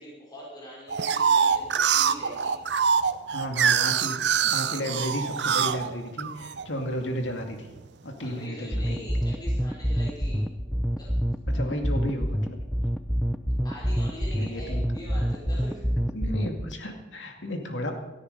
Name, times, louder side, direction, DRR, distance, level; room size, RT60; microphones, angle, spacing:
voice 1, 0.0-2.5 8.2-10.5 11.0-11.1 13.6-15.9, left 1 dB, 20° left, -6 dB, 5.3 m, -43 dB
sound 1, 0.9-6.7 7.2-7.9, right 7 dB, 65° right, 0.6 m, -24 dB
voice 2, 3.3-7.7 8.0-9.1 11.5-12.6 14.3-15.1 16.1-17.9, equal, 85° left, 4 dB, 2.3 m, -33 dB
sound 2, 8.7-16.7, equal, ahead, 0.6 m, -26 dB
17.0 x 13.5 x 5.4 m, 1.1 s
head